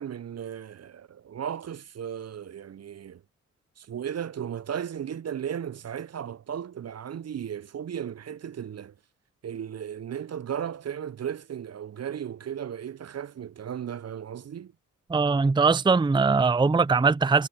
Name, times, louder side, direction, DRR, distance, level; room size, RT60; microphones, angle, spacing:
voice 1, 0.0-3.2 3.8-8.9 9.4-14.7, right 9 dB, 40° right, 0.9 m, -35 dB
voice 2, 15.1-17.5, right 4 dB, 10° right, 0.7 m, -21 dB
figure-of-eight pair, 40°, 41 cm